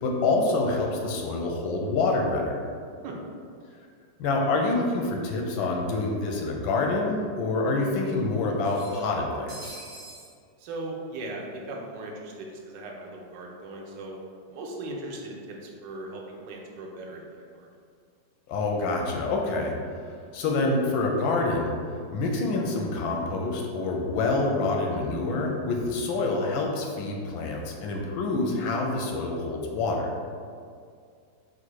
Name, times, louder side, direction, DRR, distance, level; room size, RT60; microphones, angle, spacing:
voice 1, 0.0-2.6 4.2-9.8 18.5-19.7 20.3-21.8 22.1-30.1, left 3 dB, 90° left, 1 dB, 1.4 m, -27 dB
sound 1, 8.6-10.3, right 2 dB, 55° right, 1.0 m, -45 dB
voice 2, 10.6-14.2 14.5-17.7, right 2 dB, 70° right, -1 dB, 1.2 m, -38 dB
4.0 x 2.5 x 4.5 m, 2.2 s
omnidirectional pair, 2.1 m